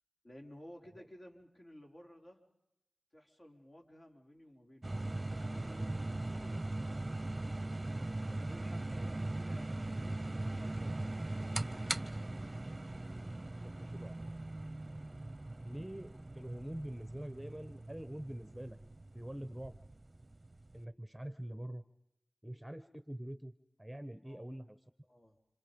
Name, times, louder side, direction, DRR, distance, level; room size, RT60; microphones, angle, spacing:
voice 1, 0.2-2.4 3.1-5.0 5.3-7.2 8.3-11.3 24.2-24.5 25.0-25.4, equal, 50° left, 1 dB, 4.4 m, -56 dB
sound 1, 4.8-20.8, right 2 dB, 30° right, 0.8 m, -40 dB
voice 2, 13.6-14.2 15.6-18.8 19.1-19.8 20.7-21.8 22.4-23.5 23.8-24.8, right 1 dB, 10° right, 12 dB, 1.1 m, -45 dB
30.0 x 27.0 x 5.4 m, 0.86 s
wide cardioid pair, 55°, 0 cm